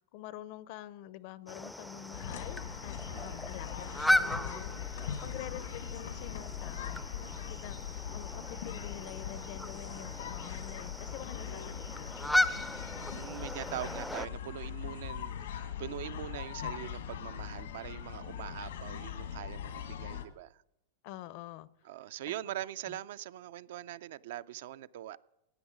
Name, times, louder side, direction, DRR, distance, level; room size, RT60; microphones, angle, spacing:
voice 1, 0.0-7.8 8.1-12.4 21.0-21.7 22.9-23.0, left 13 dB, 50° left, 0.5 m, -47 dB
sound 1, 1.5-14.3, left 1 dB, ahead, 0.4 m, -36 dB
sound 2, 2.1-20.2, left 9 dB, 85° left, 1.3 m, -41 dB
voice 2, 3.1-3.4 12.9-20.6 21.8-25.2, right 13 dB, 70° right, 0.4 m, -42 dB
15.0 x 9.5 x 5.0 m
hypercardioid pair, 130°, 0 cm